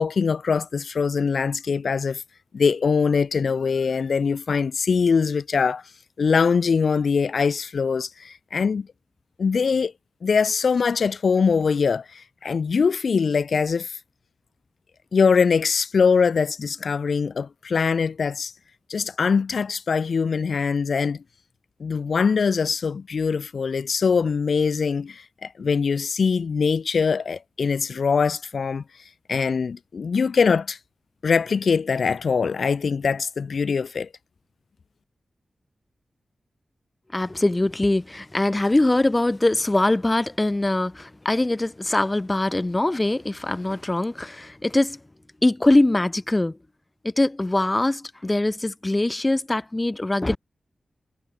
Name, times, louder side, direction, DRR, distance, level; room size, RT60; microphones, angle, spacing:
voice 1, 0.0-2.2 2.5-5.8 6.2-8.9 9.4-9.9 10.2-14.0 15.1-18.5 18.9-21.2 21.8-28.8 29.3-30.8 31.2-34.1, left 5 dB, 75° left, 2.7 m, -22 dB
voice 2, 37.1-45.0 45.4-46.6 47.0-50.4, left 2 dB, 25° left, 3.6 m, -22 dB
cardioid pair, 50°, 0 cm